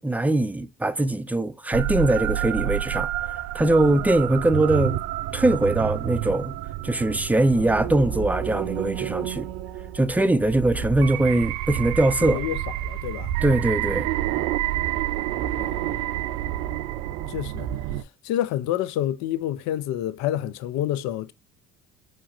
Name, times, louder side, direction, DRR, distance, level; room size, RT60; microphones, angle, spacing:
voice 1, 0.0-3.1 3.5-5.0 5.3-6.5 6.8-9.5 9.9-12.4 13.4-14.1, right 2 dB, 5° right, 0.5 m, -22 dB
sound 1, 1.7-18.0, right 13 dB, 60° right, 0.4 m, -29 dB
voice 2, 12.2-13.3 15.6-16.1 17.3-17.7 18.2-21.3, left 12 dB, 60° left, 0.5 m, -29 dB
5.7 x 3.2 x 2.5 m
hypercardioid pair, 60°, 32 cm